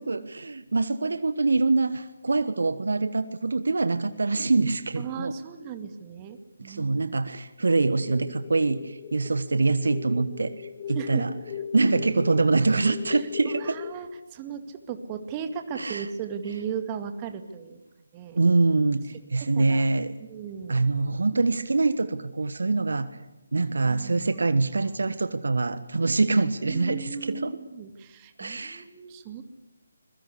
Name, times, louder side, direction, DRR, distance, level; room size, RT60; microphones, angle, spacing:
voice 1, 0.0-5.3 6.6-10.5 10.9-11.3 11.7-13.6 15.7-16.1 18.3-20.1 20.7-23.1 23.5-27.6 28.4-28.8, right 3 dB, 65° right, 13 dB, 1.4 m, -24 dB
voice 2, 5.0-6.9 10.9-11.2 13.1-17.8 18.1-18.4 19.4-19.9 20.2-20.8 23.8-24.4 26.7-29.4, right 6 dB, 20° right, 8 dB, 2.2 m, -36 dB
sound 1, 7.8-13.9, left 8 dB, 30° left, 2.4 m, -39 dB
25.5 x 22.5 x 8.4 m, 0.98 s
figure-of-eight pair, 150°, 0 cm